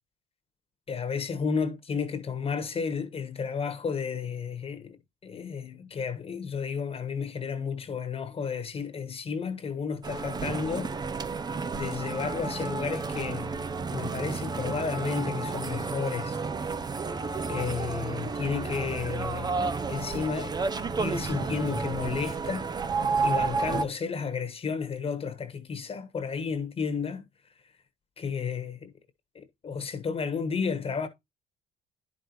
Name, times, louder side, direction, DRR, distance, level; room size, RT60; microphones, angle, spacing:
voice 1, 0.9-10.9 11.8-13.5 13.9-16.4 17.5-20.6 21.0-22.7 23.2-27.2 28.2-28.9 29.3-31.1, left 6 dB, 35° left, 1.3 m, -32 dB
sound 1, 10.0-23.8, right 4 dB, 25° right, 0.6 m, -31 dB
10.5 x 5.4 x 3.0 m
cardioid pair, 110°, 17 cm